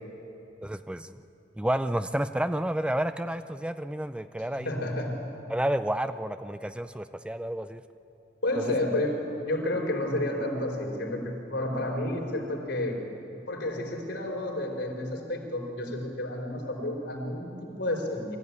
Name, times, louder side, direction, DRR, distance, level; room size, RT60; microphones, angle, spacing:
voice 1, 0.6-1.2 1.6-4.9 5.5-7.8 8.6-8.7, right 1 dB, 5° right, 10 dB, 0.4 m, -30 dB
voice 2, 4.5-5.1 8.4-9.1 9.4-13.0 13.5-18.4, left 1 dB, 75° left, 0 dB, 4.5 m, -30 dB
23.5 x 14.5 x 9.6 m, 2.9 s
head